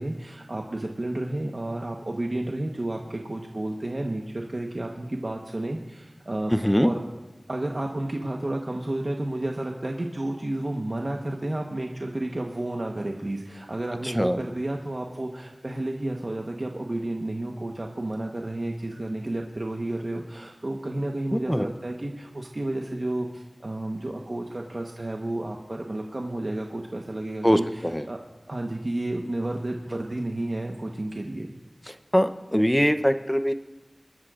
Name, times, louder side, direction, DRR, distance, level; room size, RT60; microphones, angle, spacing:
voice 1, 0.0-7.0 7.5-28.2 28.5-31.5, right 1 dB, 55° right, 1 dB, 1.1 m, -31 dB
voice 2, 6.5-6.9 14.0-14.4 21.3-21.7 27.4-28.0 31.9-33.5, equal, 5° left, 10 dB, 0.7 m, -23 dB
23.0 x 12.5 x 2.5 m, 1.2 s
wide cardioid pair, 40°, 0 cm